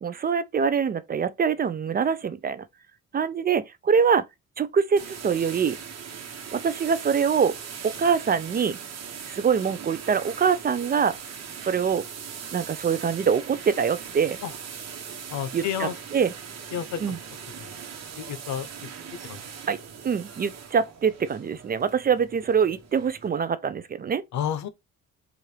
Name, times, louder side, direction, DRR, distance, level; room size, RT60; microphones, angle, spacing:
voice 1, 0.0-2.7 3.1-4.3 4.6-5.8 6.5-7.6 7.8-8.8 9.3-11.2 11.6-12.0 12.5-14.4 15.5-16.3 17.0-17.2 19.7-19.8 20.0-24.2, right 6 dB, 30° right, 0.4 m, -24 dB
sound 1, 5.0-23.3, right 7 dB, 60° right, 1.0 m, -40 dB
voice 2, 15.3-15.9 16.7-17.2 17.6-17.7 18.2-18.7 19.3-19.4 24.3-24.7, left 9 dB, 70° left, 0.7 m, -30 dB
4.5 x 2.5 x 3.2 m
cardioid pair, 90°, 30 cm